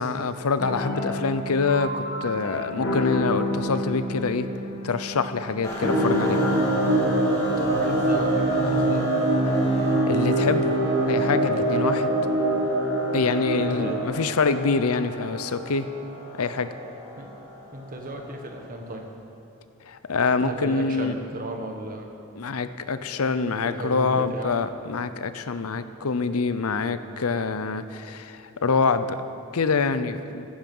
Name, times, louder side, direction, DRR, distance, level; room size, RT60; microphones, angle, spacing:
voice 1, 0.0-4.5 4.8-6.4 10.1-10.7 11.1-12.1 13.1-15.9 16.4-16.7 19.9-21.1 22.4-29.2 29.5-30.5, left 4 dB, 80° left, 12 dB, 0.7 m, -25 dB
sound 1, 0.6-7.7, left 2 dB, 50° left, 2.0 m, -30 dB
sound 2, 5.6-19.0, left 1 dB, 15° left, 3.0 m, -37 dB
sound 3, 5.8-14.0, right 2 dB, 55° right, 1.9 m, -23 dB
voice 2, 7.7-9.0 13.5-14.0 17.2-17.3 17.7-19.1 20.3-22.1 23.6-24.5, right 1 dB, 40° right, 3 dB, 1.4 m, -34 dB
15.0 x 11.5 x 5.5 m, 2.6 s
head